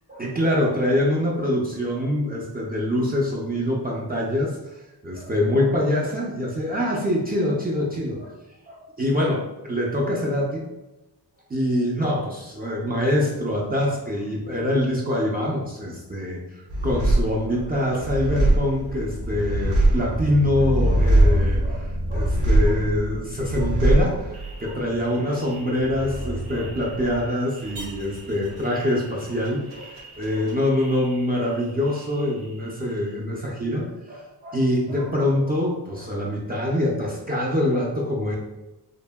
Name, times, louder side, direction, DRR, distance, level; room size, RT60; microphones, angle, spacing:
voice 1, 0.1-8.4 8.7-10.6 11.5-38.4, left 1 dB, 20° right, -4 dB, 0.4 m, -25 dB
sound 1, 16.7-31.6 31.9-32.7, right 1 dB, 90° right, 0.8 m, -24 dB
2.7 x 2.5 x 2.2 m, 1.0 s
wide cardioid pair, 115°, 43 cm